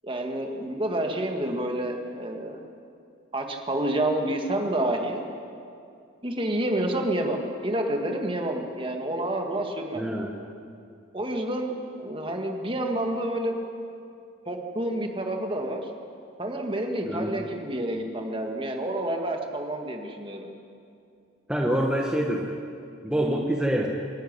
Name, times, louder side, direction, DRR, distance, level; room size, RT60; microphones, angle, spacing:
voice 1, 0.0-2.6 3.3-5.2 6.2-10.1 11.1-13.5 14.5-15.9 16.4-20.5, right 1 dB, 25° right, 3 dB, 1.9 m, -29 dB
voice 2, 9.9-10.3 17.1-17.4 21.5-22.5 23.0-23.9, right 1 dB, 5° right, -1 dB, 1.2 m, -26 dB
26.5 x 11.0 x 9.7 m, 2.4 s
head